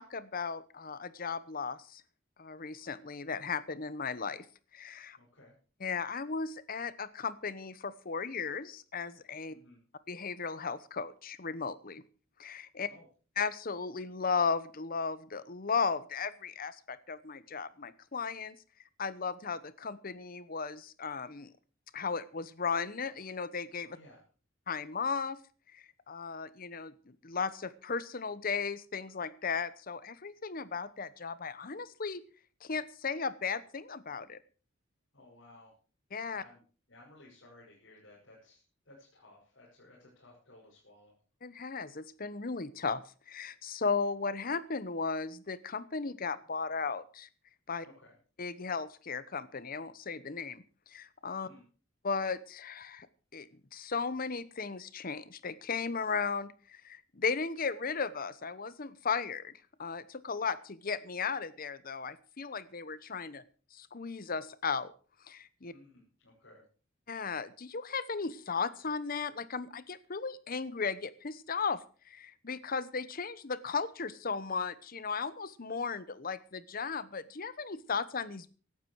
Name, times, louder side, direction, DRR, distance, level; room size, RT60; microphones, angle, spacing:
voice 1, 0.0-2.0 2.4-4.5 4.7-5.2 5.8-9.5 10.1-12.0 12.4-12.9 13.4-18.6 19.0-21.5 21.9-24.0 24.7-25.4 25.7-32.2 32.6-34.4 36.1-36.4 41.4-47.3 47.7-47.9 48.4-51.5 52.0-53.1 53.3-59.5 59.8-63.4 63.7-64.9 65.2-65.7 67.1-71.8 72.1-78.5, left 5 dB, 45° left, 16 dB, 0.9 m, -36 dB
voice 2, 5.2-5.6 9.5-9.8 12.9-13.1 23.9-24.2 35.1-35.7 36.3-36.6 36.9-41.2 47.8-48.1 51.4-51.6 65.7-66.7, left 2 dB, 70° left, -5 dB, 5.9 m, -57 dB
16.5 x 12.0 x 4.7 m, 0.40 s
head